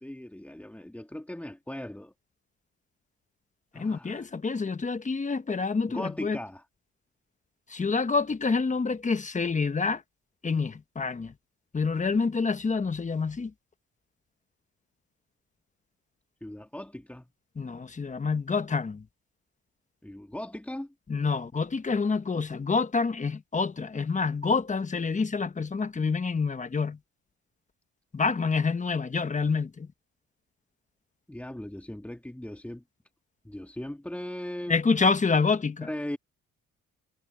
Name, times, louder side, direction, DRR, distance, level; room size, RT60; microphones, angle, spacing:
voice 1, 0.0-2.1 3.7-4.3 5.9-6.6 16.4-17.3 20.0-20.9 31.3-32.8 33.4-34.8 35.8-36.2, left 1 dB, 5° left, 1.8 m, -38 dB
voice 2, 3.7-6.4 7.7-10.0 10.4-11.3 11.7-13.5 17.6-19.0 21.1-27.0 28.1-29.9 34.7-35.9, left 4 dB, 25° left, 1.2 m, -27 dB
cardioid pair, 90°, 30 cm